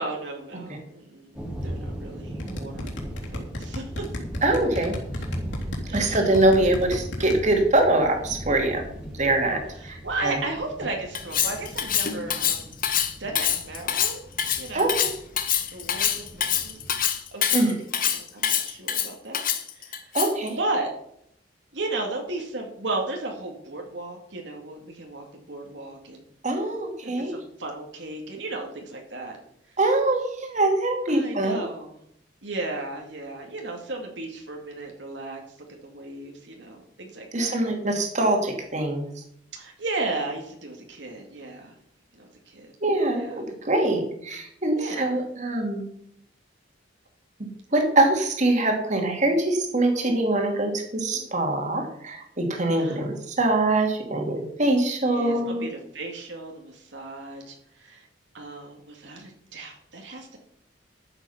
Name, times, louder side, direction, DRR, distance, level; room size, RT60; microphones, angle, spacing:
voice 1, 0.0-2.9 3.3-4.1 5.8-6.3 9.8-12.7 13.2-14.3 14.6-14.9 15.7-16.8 17.3-19.4 19.7-20.2 20.6-20.9 21.7-26.3 27.0-29.4 29.7-29.8 31.1-32.0 32.4-35.4 35.8-37.6 39.5-41.7 42.1-42.7 43.1-43.4 44.8-45.2 51.1-51.3 52.7-53.0 55.0-58.1 58.3-60.4, right 2 dB, 70° right, 1 dB, 2.2 m, -35 dB
sound 1, 1.3-17.1, equal, 5° right, 2.4 m, -39 dB
sound 2, 2.4-7.4, left 1 dB, 75° left, 3.5 m, -33 dB
voice 2, 4.4-5.0 5.9-8.8 9.2-10.0 10.2-10.4 14.7-15.1 17.5-17.8 20.1-20.6 26.4-27.3 29.8-31.6 37.3-39.1 42.8-45.8 47.7-55.6, right 2 dB, 40° right, 3 dB, 2.6 m, -23 dB
Cutlery silverware, 11.2-20.5, left 9 dB, 50° left, 1.3 m, -25 dB
12.5 x 8.1 x 5.7 m, 0.72 s
head